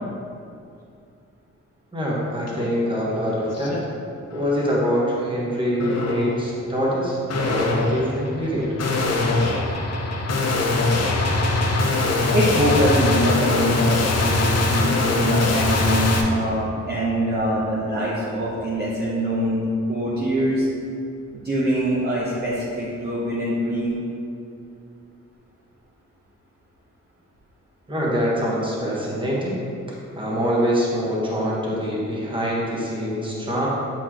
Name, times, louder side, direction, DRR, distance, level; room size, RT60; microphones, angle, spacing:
voice 1, 1.9-3.8 4.3-8.7 27.9-29.6 29.9-33.7, equal, 15° right, -5 dB, 1.3 m, -24 dB
sound 1, 2.5-2.6 3.1-3.8 4.3-4.7 5.8-6.4 7.3-16.2, left 2 dB, 55° left, 0.7 m, -22 dB
voice 2, 12.3-19.6 19.9-20.7 21.3-24.0, equal, 35° right, -7 dB, 0.9 m, -24 dB
7.4 x 4.5 x 3.0 m, 2.5 s
wide cardioid pair, 115°, 30 cm